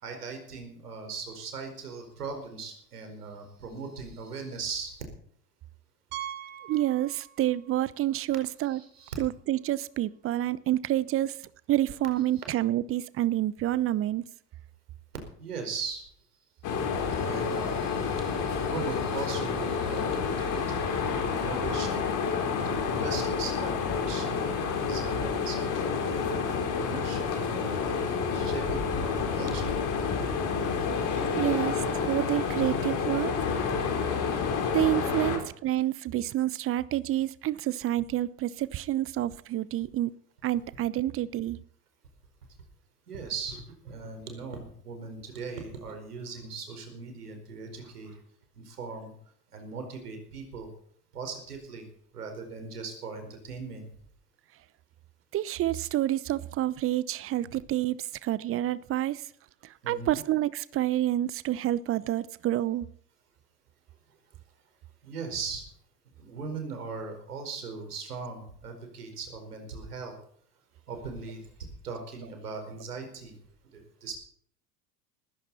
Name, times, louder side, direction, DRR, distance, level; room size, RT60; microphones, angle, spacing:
voice 1, 0.0-5.0 8.7-9.1 15.4-16.1 16.9-22.1 22.6-25.6 26.1-27.9 28.3-29.8 35.0-35.4 43.1-48.2 48.5-49.1 49.5-50.7 51.1-51.9 52.1-53.9 59.8-60.2 65.0-65.6 66.2-70.2 70.9-71.4 71.8-73.4 73.7-74.1, right 4 dB, 75° right, 4.8 m, -39 dB
Piano, 6.1-7.7 8.0-8.1 8.7-8.8 9.1-9.2 11.2-11.3, right 12 dB, 50° right, 2.4 m, -41 dB
voice 2, 6.7-8.8 9.2-11.4 11.7-14.2 31.1-33.3 34.7-40.1 40.4-41.6 55.3-59.2 59.6-62.9, right 14 dB, 30° right, 0.8 m, -28 dB
sound 1, 16.6-35.4, left 5 dB, 40° left, 4.0 m, -29 dB
20.0 x 15.5 x 4.2 m
figure-of-eight pair, 80°, 46 cm